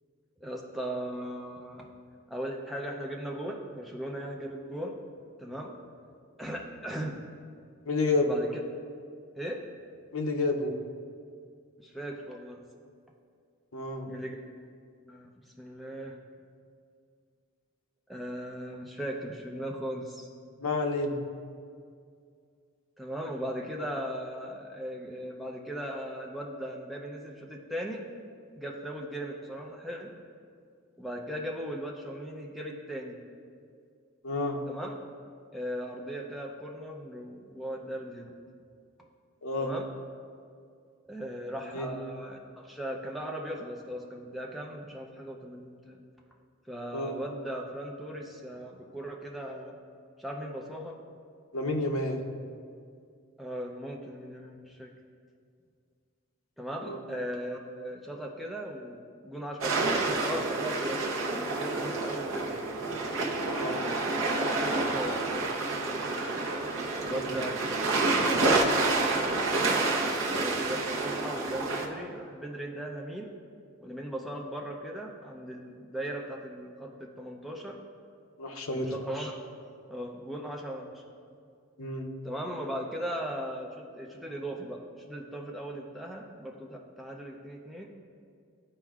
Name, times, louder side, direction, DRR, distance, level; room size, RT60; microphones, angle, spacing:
voice 1, 0.4-1.9 2.3-5.0 5.4-5.7 6.4-7.2 8.2-8.6 9.4-9.6 11.8-12.6 14.1-14.3 15.0-15.3 15.6-16.2 18.1-20.3 23.0-28.0 28.6-30.1 31.0-33.2 34.7-34.9 35.5-38.3 39.6-39.9 41.1-46.0 46.7-49.8 50.2-51.0 53.4-54.9 56.6-62.6 63.1-64.0 64.4-65.5 65.8-66.3 67.1-67.7 68.1-69.8 70.4-73.3 73.8-77.8 78.7-79.3 79.9-81.0 82.2-87.9, right 1 dB, ahead, -1 dB, 0.5 m, -38 dB
voice 2, 7.9-8.3 10.1-10.7 13.7-14.1 20.6-21.2 34.2-34.6 39.4-39.7 41.7-41.9 46.9-47.1 51.5-52.2 56.9-57.0 63.4-63.8 67.1-67.3 78.4-78.9 81.8-82.1, left 2 dB, 75° left, 3 dB, 0.7 m, -30 dB
sound 1, 59.6-71.9, right 3 dB, 70° right, 0.8 m, -28 dB
12.0 x 4.4 x 2.4 m, 2.3 s
head